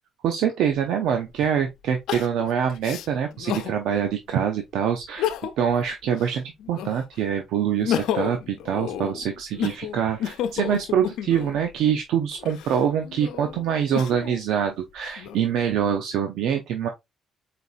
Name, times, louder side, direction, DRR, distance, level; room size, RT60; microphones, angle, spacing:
voice 1, 0.2-16.9, right 8 dB, 85° right, 0.6 m, -25 dB
Crying sobbing, 0.7-0.8 2.1-3.8 4.3-4.4 5.0-5.7 6.1-7.1 7.6-11.6 12.3-14.4 15.0-15.8, left 10 dB, 85° left, 0.5 m, -31 dB
4.1 x 4.0 x 2.4 m
cardioid pair, 90°, 0 cm